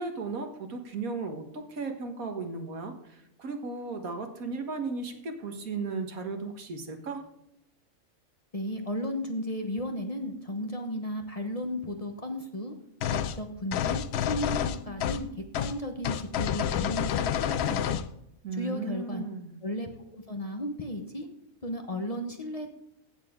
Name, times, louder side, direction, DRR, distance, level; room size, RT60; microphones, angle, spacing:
voice 1, 0.0-1.4 1.7-7.2 18.4-19.5, right 4 dB, 80° right, 5 dB, 1.9 m, -35 dB
voice 2, 8.5-12.7 13.1-15.3 15.5-18.0 18.5-19.2 19.6-21.3 21.6-22.7, left 1 dB, 30° left, 4 dB, 1.1 m, -34 dB
sound 1, 13.0-13.4 13.7-15.3 15.5-15.7 16.0-18.1, left 9 dB, 60° left, 0.7 m, -29 dB
16.0 x 6.7 x 3.7 m, 0.82 s
omnidirectional pair, 1.5 m